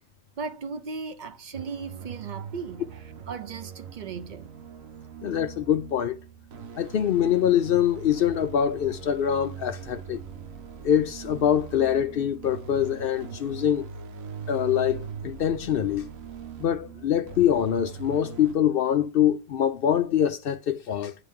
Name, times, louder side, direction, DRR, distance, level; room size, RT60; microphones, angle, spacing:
voice 1, 0.4-4.5, right 5 dB, 45° right, 0.6 m, -37 dB
sound 1, 1.5-18.5, right 6 dB, 85° right, 1.2 m, -41 dB
voice 2, 5.2-6.2 6.8-10.2 10.8-13.9 14.5-16.1 16.6-21.1, left 9 dB, 60° left, 0.6 m, -24 dB
8.9 x 3.3 x 3.6 m
omnidirectional pair, 1.4 m